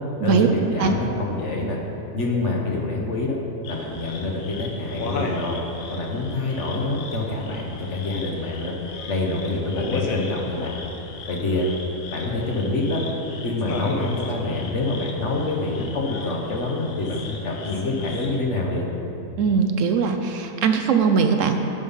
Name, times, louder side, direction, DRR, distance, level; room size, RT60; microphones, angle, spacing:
voice 1, 0.2-1.8 2.1-3.4 3.7-5.6 5.9-8.7 9.1-10.7 11.3-11.7 12.1-13.0 13.4-18.9, left 2 dB, 55° left, -1 dB, 1.4 m, -26 dB
sound 1, 3.6-18.4, left 3 dB, 75° left, 1.2 m, -35 dB
voice 2, 19.4-21.6, right 6 dB, 70° right, 6 dB, 0.9 m, -20 dB
10.5 x 5.3 x 5.5 m, 3.0 s
omnidirectional pair, 1.5 m